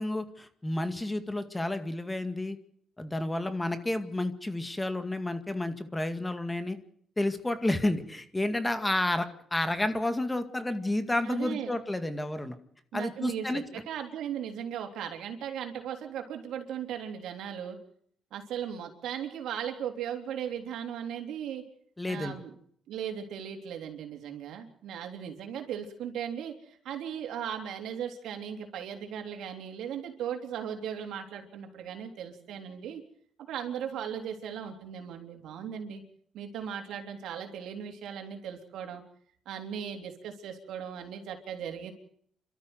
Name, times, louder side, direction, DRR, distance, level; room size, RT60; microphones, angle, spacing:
voice 1, 0.0-2.6 3.0-6.8 7.2-12.6 12.9-13.6 22.0-22.4, left 1 dB, 15° left, 9 dB, 2.0 m, -30 dB
voice 2, 11.2-11.7 12.9-17.8 18.3-21.6 22.1-22.5 22.9-33.0 33.5-36.0 36.3-39.0 39.4-41.9, right 8 dB, 80° right, 4 dB, 3.5 m, -37 dB
28.5 x 13.0 x 7.9 m, 0.65 s
cardioid pair, 90°, 0 cm